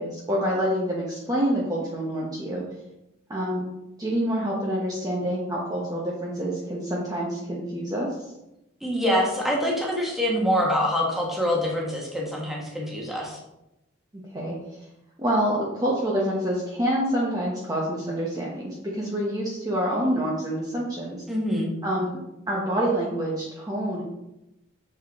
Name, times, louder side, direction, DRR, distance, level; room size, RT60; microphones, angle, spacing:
voice 1, 0.0-2.6 3.3-3.7 4.0-8.1 14.1-14.5 15.2-21.2 21.8-22.2 22.5-24.0, equal, 20° right, -4 dB, 1.0 m, -27 dB
voice 2, 8.8-13.4 21.3-21.7, equal, ahead, -3 dB, 1.4 m, -25 dB
6.6 x 4.3 x 3.6 m, 0.89 s
head